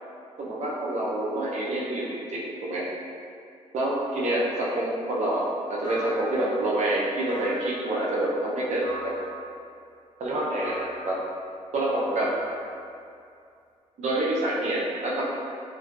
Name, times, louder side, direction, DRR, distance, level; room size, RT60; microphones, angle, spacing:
voice 1, 0.4-2.9 3.7-9.1 10.2-11.2 11.7-12.3 14.0-15.3, right 1 dB, 65° right, -4 dB, 0.5 m, -27 dB
sound 1, 4.1-4.5 5.8-6.6 7.3-7.9 8.8-9.3 10.6-11.1 12.1-12.9, equal, 30° left, 0.6 m, -40 dB
2.5 x 2.2 x 2.3 m, 2.4 s
cardioid pair, 105°, 13 cm